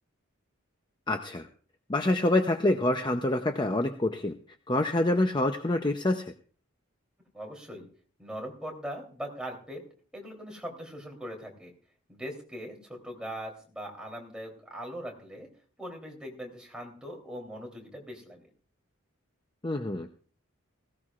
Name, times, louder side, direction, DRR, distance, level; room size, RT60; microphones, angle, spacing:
voice 1, 1.1-1.5 1.9-4.3 4.7-6.2 19.6-20.2, left 1 dB, 20° left, 6 dB, 0.6 m, -26 dB
voice 2, 7.3-7.9 8.2-9.8 10.1-11.7 12.1-15.5 15.8-18.5, equal, 5° right, 0 dB, 3.3 m, -40 dB
18.0 x 16.5 x 2.5 m, 0.42 s
head